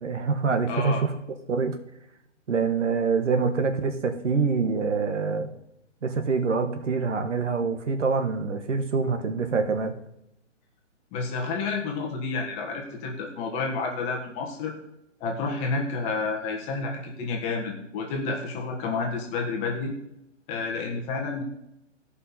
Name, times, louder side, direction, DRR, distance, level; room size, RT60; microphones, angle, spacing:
voice 1, 0.0-1.1 1.5-1.8 2.5-5.5 6.0-9.9, right 5 dB, 70° right, 7 dB, 1.5 m, -25 dB
voice 2, 0.7-1.0 11.1-14.7 15.2-19.9 20.5-21.4, left 4 dB, 20° left, 1 dB, 1.3 m, -30 dB
16.5 x 5.6 x 4.2 m, 0.82 s
hypercardioid pair, 150°, 37 cm